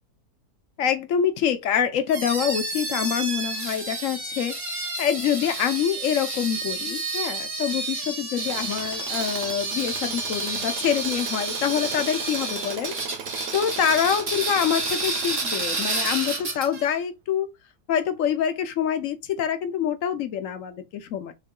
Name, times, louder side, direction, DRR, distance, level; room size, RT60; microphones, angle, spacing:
voice 1, 0.8-4.6 5.0-13.0 13.5-17.5 17.9-21.3, left 8 dB, 65° left, 1.0 m, -26 dB
sound 1, 2.1-16.9, right 3 dB, 40° right, 2.0 m, -30 dB
Tools, 8.5-16.8, right 7 dB, 85° right, 1.4 m, -37 dB
6.6 x 3.3 x 2.2 m
omnidirectional pair, 1.7 m